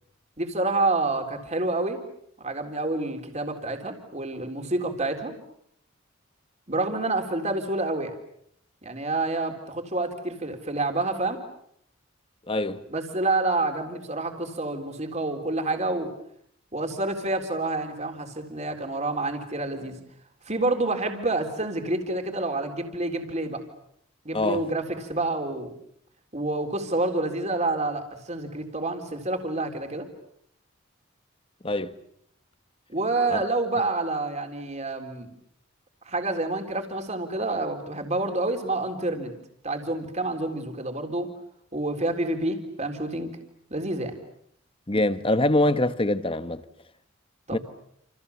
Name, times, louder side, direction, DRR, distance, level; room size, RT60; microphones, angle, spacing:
voice 1, 0.4-2.0 2.4-5.3 6.7-8.1 8.8-11.4 12.9-16.1 16.7-20.0 20.5-23.6 24.3-25.7 26.3-30.1 32.9-35.3 36.1-39.3 39.6-41.3 41.7-43.4 43.7-44.2 47.5-47.6, right 2 dB, 35° right, 3.8 m, -28 dB
voice 2, 12.5-12.8 24.3-24.6 31.6-31.9 33.3-33.4 44.9-46.6 47.5-47.6, left 1 dB, 25° left, 1.2 m, -24 dB
29.0 x 28.5 x 7.1 m
head